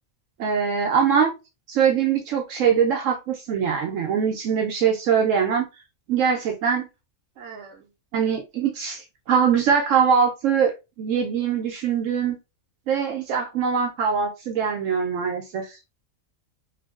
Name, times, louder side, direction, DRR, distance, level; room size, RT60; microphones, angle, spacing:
voice 1, 0.4-1.3 1.7-5.7 6.1-6.9 7.4-7.7 8.1-10.7 11.0-12.4 12.9-15.8, right 7 dB, 70° right, 0.9 m, -22 dB
3.1 x 2.6 x 2.3 m
omnidirectional pair, 1.4 m